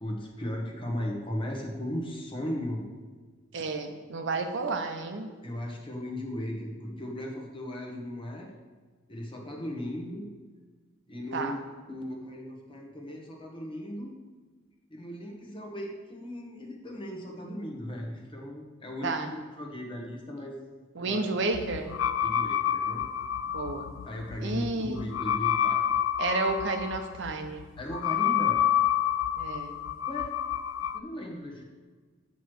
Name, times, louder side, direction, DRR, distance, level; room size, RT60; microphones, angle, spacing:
voice 1, 0.0-2.8 5.4-8.5 9.1-10.3 11.1-14.1 14.9-20.6 21.0-21.3 22.2-23.0 24.1-25.8 27.8-28.6 30.1-30.3 30.9-31.6, left 1 dB, 25° left, 0 dB, 1.1 m, -37 dB
voice 2, 3.5-5.3 11.3-11.6 19.0-19.3 20.9-21.9 23.5-23.9 24.4-25.1 26.2-27.7 29.4-29.8, right 3 dB, 65° right, 6 dB, 0.7 m, -31 dB
sound 1, 21.5-31.0, left 10 dB, 80° left, 0.3 m, -29 dB
7.9 x 3.1 x 6.3 m, 1.4 s
head